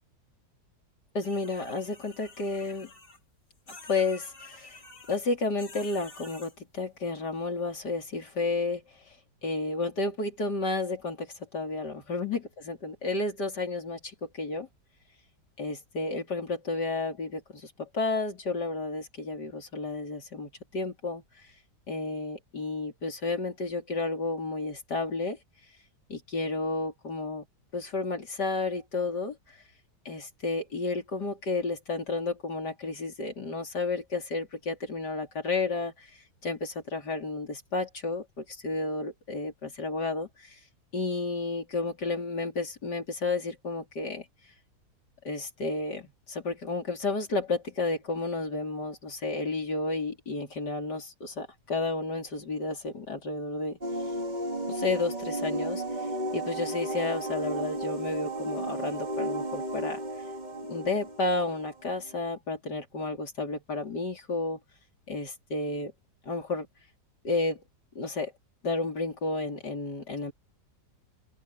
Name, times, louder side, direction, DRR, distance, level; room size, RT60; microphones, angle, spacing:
voice 1, 1.1-2.9 3.9-4.8 5.1-9.2 9.4-14.7 15.6-21.5 21.9-25.4 26.1-27.4 27.7-29.6 30.1-40.6 40.9-44.3 45.2-53.8 54.7-60.0 60.7-64.6 65.1-65.9 66.3-66.7 67.2-67.6 68.0-68.3 68.6-70.3, left 3 dB, 75° left, 4.3 m, -32 dB
sound 1, 1.2-3.2 3.7-5.2 5.6-6.5, left 2 dB, 35° left, 2.9 m, -49 dB
sound 2, 53.8-62.2, right 1 dB, 25° right, 1.9 m, -34 dB
open air
omnidirectional pair, 1.8 m